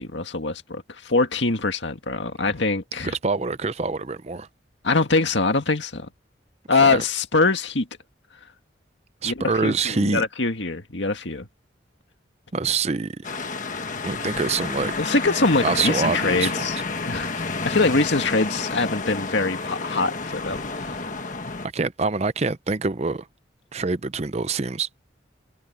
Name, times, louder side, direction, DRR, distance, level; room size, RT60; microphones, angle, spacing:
voice 1, 0.0-3.1 4.8-6.1 6.7-7.9 9.2-11.5 15.0-16.8 17.1-20.9, left 3 dB, 70° left, 2.0 m, -23 dB
voice 2, 3.2-4.5 6.7-7.0 9.2-10.2 12.5-13.2 14.0-14.9 15.6-16.7 21.7-23.3 23.7-24.9, right 4 dB, 35° right, 0.6 m, -25 dB
sound 1, 13.2-21.7, left 3 dB, 40° left, 1.5 m, -30 dB
head